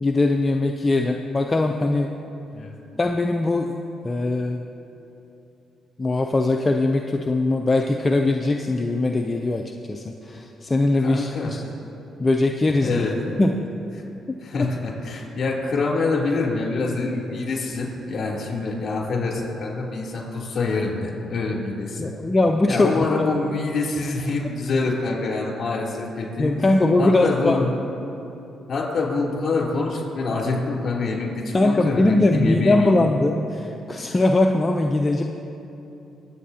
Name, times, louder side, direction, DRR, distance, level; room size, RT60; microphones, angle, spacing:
voice 1, 0.0-2.1 3.0-3.7 4.0-4.6 6.0-9.6 9.9-11.6 12.2-13.1 13.4-13.5 22.0-22.9 26.4-27.6 31.5-35.2, left 2 dB, 25° left, 3 dB, 0.6 m, -21 dB
voice 2, 11.0-11.5 12.8-13.4 14.4-22.1 22.7-26.5 27.0-27.7 28.7-32.9, left 3 dB, 60° left, -2 dB, 3.0 m, -25 dB
23.5 x 8.3 x 2.8 m, 2.9 s
supercardioid pair, 65°, 0 cm